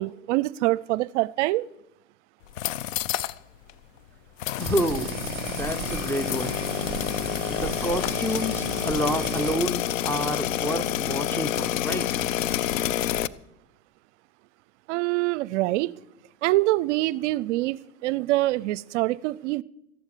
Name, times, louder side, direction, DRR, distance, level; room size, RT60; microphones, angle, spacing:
voice 1, 0.0-1.7 14.9-15.9 16.4-19.6, right 18 dB, 65° right, 22 dB, 0.5 m, -25 dB
sound 1, 2.4-3.4 3.7-3.8 4.4-13.3, left 12 dB, 80° left, 0.7 m, -28 dB
voice 2, 4.6-5.1 5.5-6.6 7.5-12.3, equal, 5° left, 12 dB, 0.8 m, -29 dB
sound 2, 4.6-9.6, right 13 dB, 35° right, 1.2 m, -36 dB
14.5 x 11.0 x 6.7 m, 0.82 s
hypercardioid pair, 110°, 39 cm